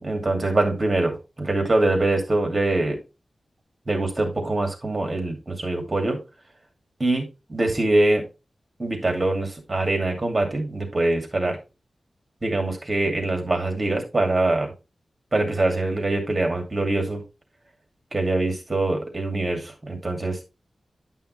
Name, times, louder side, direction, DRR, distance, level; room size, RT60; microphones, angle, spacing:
voice 1, 0.0-3.0 3.9-6.2 7.0-8.2 8.8-11.6 12.4-14.7 15.3-17.2 18.1-20.4, right 2 dB, 30° right, 3 dB, 2.5 m, -24 dB
10.5 x 5.6 x 3.2 m, 0.27 s
wide cardioid pair, 110°, 0 cm